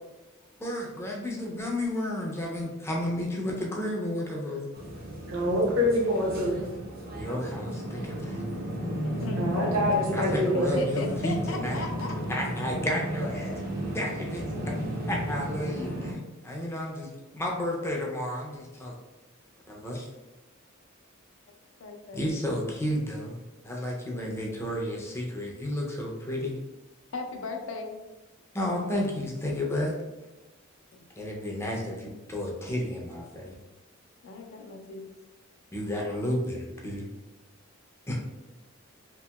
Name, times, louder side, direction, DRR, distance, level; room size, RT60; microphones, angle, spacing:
voice 1, 0.6-4.7 7.1-8.4 10.1-11.8 12.3-13.6 13.9-14.8 15.1-18.9 19.7-20.1 22.1-23.4 23.6-26.6 28.5-30.0 31.2-33.5 35.7-37.1 38.1-38.2, left 1 dB, 10° left, -2 dB, 0.4 m, -32 dB
sound 1, 4.7-16.1, equal, 45° right, 0.6 m, -34 dB
voice 2, 5.3-6.6 9.4-10.8, left 1 dB, 75° right, -3 dB, 0.9 m, -26 dB
voice 3, 9.0-12.1 21.8-22.4 27.1-27.9 34.2-35.0, left 2 dB, 65° left, 3 dB, 0.4 m, -36 dB
2.8 x 2.7 x 2.2 m, 1.1 s
head